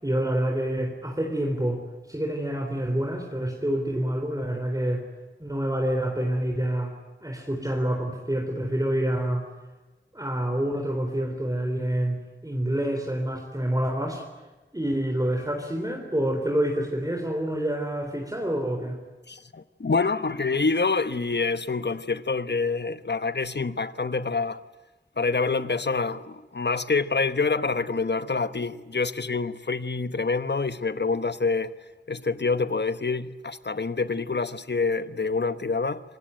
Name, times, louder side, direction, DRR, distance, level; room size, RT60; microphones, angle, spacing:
voice 1, 0.0-1.8 2.1-5.0 5.4-6.9 7.2-9.5 10.1-14.2 14.7-19.0, right 1 dB, 20° right, 3.8 m, -27 dB
voice 2, 19.3-24.6 25.2-31.7 32.1-36.0, left 4 dB, 60° left, 1.1 m, -26 dB
26.0 x 20.5 x 9.2 m
wide cardioid pair, 65°, 20 cm